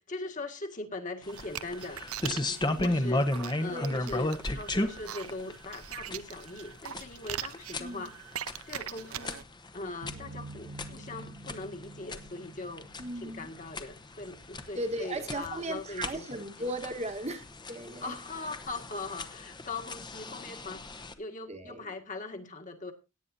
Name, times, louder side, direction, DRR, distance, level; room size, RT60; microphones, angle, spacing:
voice 1, 0.0-3.3 3.6-9.4 9.7-12.9 13.1-16.7 18.0-22.9, left 2 dB, 35° left, 4 dB, 1.9 m, -41 dB
sound 1, 1.2-21.1, left 1 dB, 20° left, 1.0 m, -36 dB
sound 2, 1.3-9.4, right 10 dB, 85° right, 0.7 m, -42 dB
voice 2, 2.6-3.0 3.7-4.0 7.8-8.0 13.0-13.5 14.7-18.0 21.5-21.9, right 1 dB, 30° right, 6 dB, 1.4 m, -37 dB
sound 3, 10.0-13.8, right 2 dB, 50° right, 1.2 m, -47 dB
17.5 x 9.7 x 2.7 m, 0.27 s
head